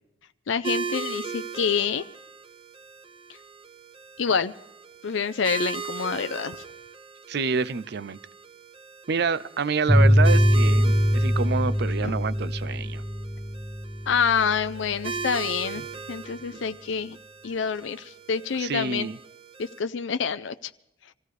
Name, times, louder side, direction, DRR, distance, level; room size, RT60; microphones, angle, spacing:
voice 1, 0.5-2.0 4.2-4.5 5.0-6.6 12.0-12.1 14.1-15.8 16.1-17.2 17.4-19.1 19.6-20.5, left 6 dB, 90° left, 10 dB, 0.5 m, -27 dB
sound 1, 0.6-19.8, right 5 dB, 30° right, 0.9 m, -38 dB
voice 2, 7.3-8.2 9.1-13.0 15.8-15.9 16.5-16.6 18.6-19.2, right 4 dB, 60° right, 17 dB, 0.6 m, -28 dB
sound 2, 9.9-15.0, equal, 10° right, 1.7 m, -22 dB
25.0 x 16.0 x 3.3 m, 0.88 s
head